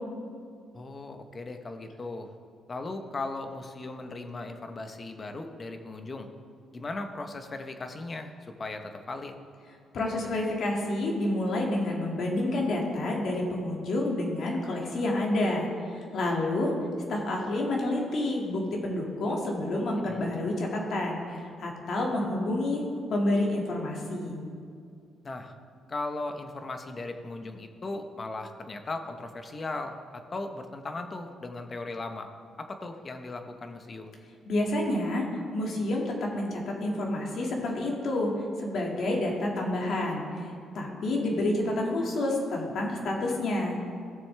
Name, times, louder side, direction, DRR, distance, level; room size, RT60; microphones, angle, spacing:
voice 1, 0.7-2.3 2.7-6.3 6.7-9.3 20.1-20.2 25.2-25.5 25.9-32.3 32.6-34.1, left 2 dB, 35° left, 6 dB, 0.9 m, -37 dB
voice 2, 9.9-16.7 17.1-24.4 34.5-35.3 35.5-38.3 38.6-40.5 40.7-43.8, left 1 dB, 65° left, -1 dB, 2.1 m, -29 dB
16.0 x 6.9 x 3.4 m, 2.3 s
cardioid pair, 90°, 0 cm